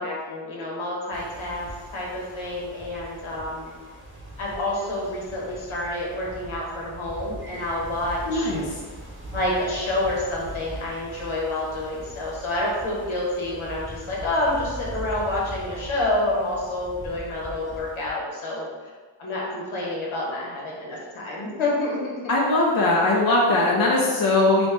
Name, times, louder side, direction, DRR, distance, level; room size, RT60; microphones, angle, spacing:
voice 1, 0.0-3.7 4.4-8.5 9.3-18.7 19.2-22.2, left 1 dB, 75° left, -4 dB, 1.2 m, -28 dB
sound 1, 1.1-18.1, right 1 dB, 25° right, 0.8 m, -40 dB
voice 2, 8.3-8.8 22.3-24.7, left 2 dB, 45° left, -3 dB, 0.7 m, -20 dB
3.0 x 2.9 x 3.3 m, 1.4 s
cardioid pair, 70°, 49 cm